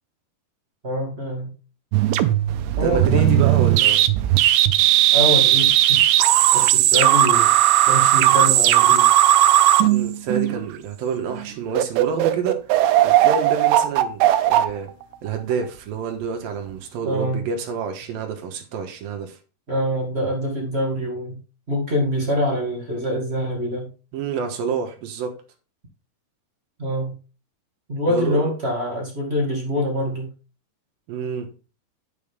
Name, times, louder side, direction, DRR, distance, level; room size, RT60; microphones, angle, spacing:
voice 1, 0.8-1.5 2.7-3.8 5.1-7.5 7.9-9.1 17.0-17.5 19.7-21.4 21.7-23.9 26.8-27.2 27.9-30.3, equal, 25° right, 1.5 m, -25 dB
sound 1, 1.9-10.8 11.3-11.5 11.8-15.7, right 13 dB, 85° right, 2.8 m, -17 dB
voice 2, 2.8-4.1 9.8-12.6 13.0-14.9 15.2-19.4 24.1-25.4 28.1-28.5 31.1-31.5, right 6 dB, 70° right, 2.8 m, -28 dB
9.3 x 7.6 x 3.6 m
omnidirectional pair, 4.8 m